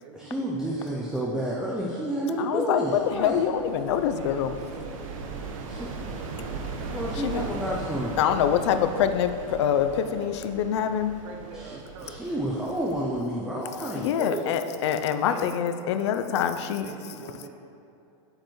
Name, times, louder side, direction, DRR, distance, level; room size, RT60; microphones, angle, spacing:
voice 1, 0.1-3.4 5.7-5.9 6.8-8.2 11.5-11.8 12.0-14.4, right 1 dB, 5° right, -4 dB, 0.3 m, -30 dB
voice 2, 2.4-4.6 7.1-7.4 8.2-11.1 13.8-16.9, left 9 dB, 60° left, 9 dB, 0.5 m, -25 dB
sound 1, 2.9-13.2, right 4 dB, 85° right, 1.0 m, -38 dB
voice 3, 4.1-7.1 11.2-12.2 15.2-15.5 16.8-17.5, right 4 dB, 60° right, 2 dB, 0.8 m, -44 dB
8.7 x 7.6 x 3.1 m, 2.6 s
supercardioid pair, 170°, 17 cm